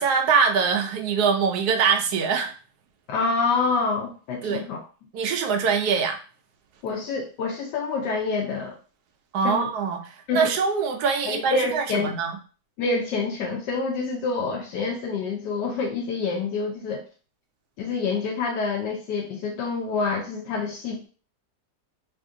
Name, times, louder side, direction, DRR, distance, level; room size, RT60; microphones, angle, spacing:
voice 1, 0.0-2.5 4.4-4.6 5.1-6.2 9.3-12.4, right 6 dB, 75° right, 4 dB, 1.2 m, -23 dB
voice 2, 3.1-4.8 6.8-8.8 9.4-9.7 10.3-10.5 11.3-12.1 12.8-17.0 17.8-21.1, left 4 dB, 85° left, 0 dB, 1.2 m, -27 dB
3.3 x 2.5 x 3.6 m, 0.38 s
omnidirectional pair, 1.8 m